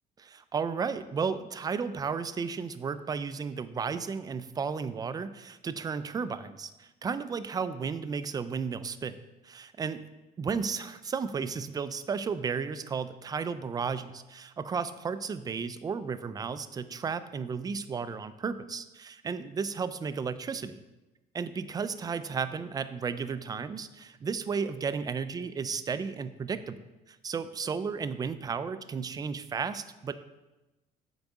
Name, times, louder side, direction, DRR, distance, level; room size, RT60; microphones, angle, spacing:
voice 1, 0.2-9.2 9.4-10.0 10.4-20.8 21.3-26.8 27.1-30.1, right 5 dB, 25° right, 13 dB, 0.3 m, -33 dB
7.8 x 3.9 x 3.6 m, 1.0 s
cardioid pair, 110°, 17 cm